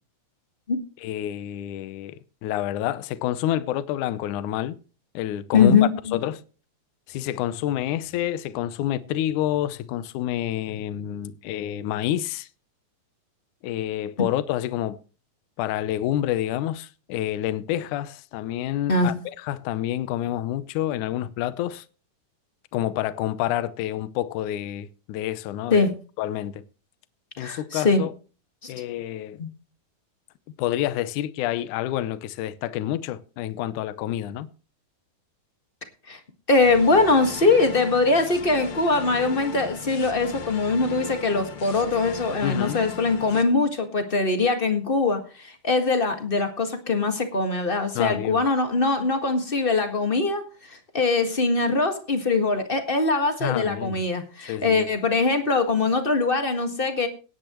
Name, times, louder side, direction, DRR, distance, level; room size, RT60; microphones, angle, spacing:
voice 1, 1.0-4.8 5.1-6.4 7.1-12.5 13.6-15.0 15.6-21.9 22.7-25.9 26.2-26.6 27.4-28.1 28.7-29.4 30.6-34.5 42.4-42.8 48.0-48.4 53.4-54.0 54.5-54.9, left 12 dB, 75° left, 2.1 m, -28 dB
voice 2, 5.5-6.2 18.9-19.1 25.7-25.9 27.4-28.0 28.6-28.7 29.4-29.5 36.1-36.2 36.5-57.1, left 3 dB, 35° left, 0.9 m, -22 dB
sound 1, 36.6-43.4, left 6 dB, 50° left, 2.6 m, -37 dB
18.0 x 10.5 x 3.0 m
omnidirectional pair, 3.9 m